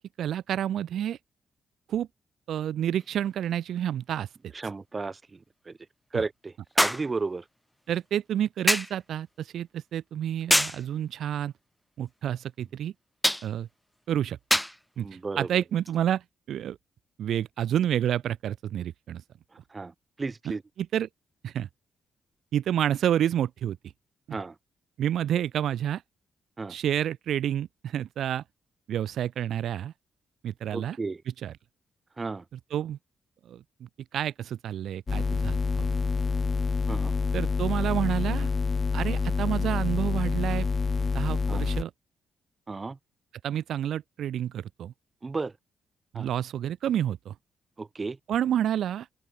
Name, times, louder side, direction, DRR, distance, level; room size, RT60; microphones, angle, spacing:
voice 1, 0.2-1.2 1.9-2.1 2.5-4.3 6.1-6.2 7.9-11.5 12.0-12.9 13.4-13.7 14.1-14.4 15.0-15.1 15.4-16.8 17.2-19.2 20.8-21.1 21.4-21.7 22.5-23.8 25.0-26.0 26.7-28.4 28.9-29.9 30.4-31.0 31.4-31.5 32.5-33.0 33.5-33.6 34.1-35.9 37.3-38.5 38.9-40.7 41.1-41.9 43.4-44.9 46.1-47.3 48.3-49.1, right 10 dB, 75° right, 0.6 m, -29 dB
sound 1, 3.0-3.1 6.8-7.1 8.7-9.0 10.5-10.8 13.2-13.5 14.5-14.8 15.9-16.0, equal, 5° left, 0.5 m, -24 dB
voice 2, 4.5-5.4 5.7-5.8 6.1-7.4 15.0-15.6 19.7-19.9 20.2-20.6 24.3-24.5 26.6-26.8 30.7-31.2 32.2-32.4 36.9-37.1 41.5-41.6 42.7-43.0 45.2-45.5 46.1-46.3 47.8-48.2, right 3 dB, 35° right, 0.9 m, -33 dB
sound 2, 35.1-41.8, left 4 dB, 40° left, 1.5 m, -27 dB
open air
supercardioid pair, 55°, 0 cm